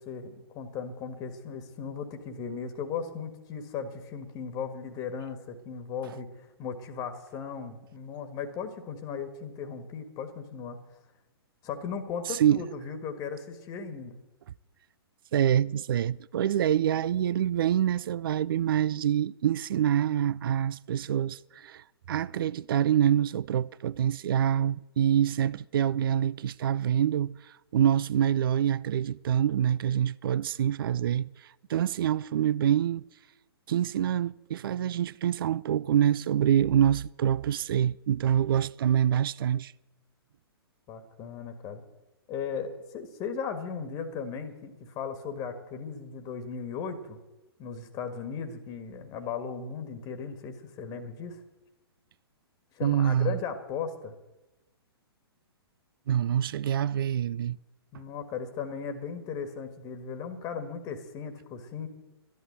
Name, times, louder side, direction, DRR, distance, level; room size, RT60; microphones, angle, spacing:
voice 1, 0.0-10.8 11.6-14.2 40.9-41.8 42.3-47.2 47.6-51.4 52.7-54.1 57.9-61.9, left 6 dB, 25° left, 1.6 m, -37 dB
voice 2, 12.3-12.6 15.3-27.4 27.7-31.3 31.7-33.0 33.7-39.7 52.8-53.4 56.1-57.6, right 10 dB, 60° right, 0.4 m, -26 dB
12.5 x 11.5 x 7.9 m
figure-of-eight pair, 120°, 13 cm